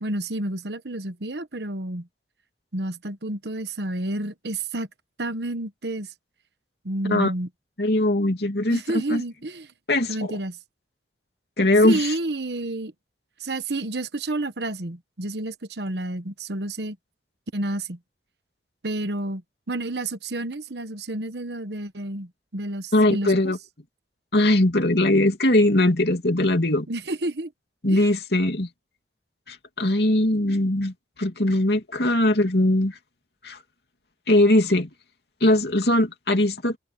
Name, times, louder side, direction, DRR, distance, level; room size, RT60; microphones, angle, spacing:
voice 1, 0.0-2.1 2.7-4.9 5.2-6.1 6.8-7.5 8.7-9.7 10.1-10.6 11.8-12.9 13.4-17.0 17.5-18.0 18.8-19.4 19.7-23.5 26.9-27.5 27.9-28.1, right 2 dB, 75° right, 1.3 m, -30 dB
voice 2, 7.8-9.2 9.9-10.4 11.6-12.1 22.9-23.6 24.3-26.9 27.8-28.7 29.5-30.9 31.2-33.0 33.4-33.6 34.3-34.9 35.4-36.8, left 1 dB, 70° left, 2.9 m, -20 dB
head